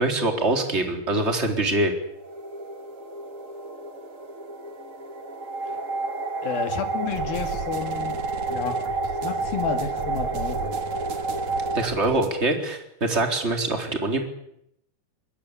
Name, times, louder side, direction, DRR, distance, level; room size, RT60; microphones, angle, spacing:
voice 1, 0.0-1.9 11.7-14.2, right 2 dB, 15° right, 4 dB, 3.8 m, -24 dB
sound 1, 1.9-11.9, right 3 dB, 40° right, 1.2 m, -30 dB
voice 2, 6.4-8.2 8.5-8.9 9.2-10.8, left 6 dB, 75° left, 6 dB, 4.1 m, -31 dB
sound 2, 7.1-12.3, right 5 dB, 55° right, 3.4 m, -37 dB
24.0 x 22.5 x 8.6 m, 0.78 s
omnidirectional pair, 4.3 m